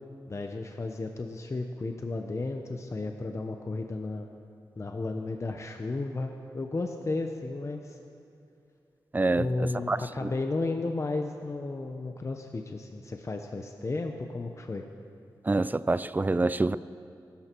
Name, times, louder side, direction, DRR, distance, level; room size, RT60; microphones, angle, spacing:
voice 1, 0.3-4.3 4.8-8.0 9.3-14.8, left 3 dB, 40° left, 4 dB, 0.9 m, -33 dB
voice 2, 9.1-10.3 15.5-16.8, right 2 dB, 20° right, 16 dB, 0.5 m, -27 dB
23.0 x 13.0 x 4.6 m, 2.5 s
cardioid pair, 75°, 8 cm